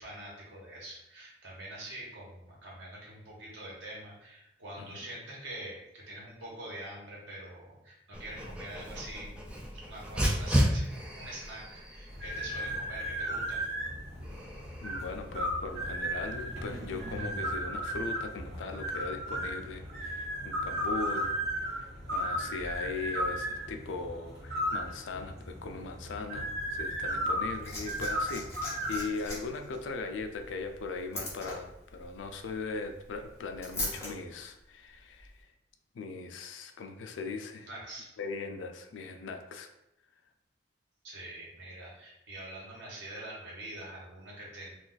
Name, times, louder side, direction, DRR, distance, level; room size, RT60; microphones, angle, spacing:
voice 1, 0.0-13.6 37.7-38.1 41.0-44.7, right 1 dB, 75° right, -4 dB, 1.1 m, -45 dB
Dog, 8.1-17.2, equal, 5° right, 0.3 m, -35 dB
sound 1, 12.1-29.0, equal, 55° right, 0.9 m, -35 dB
voice 2, 14.8-21.4 21.7-35.5 35.9-37.7 38.2-39.7, left 4 dB, 85° left, 5 dB, 0.4 m, -39 dB
Liquid, 27.2-34.1 35.2-35.3, left 1 dB, 15° left, 0.7 m, -41 dB
2.4 x 2.3 x 3.9 m, 0.84 s
head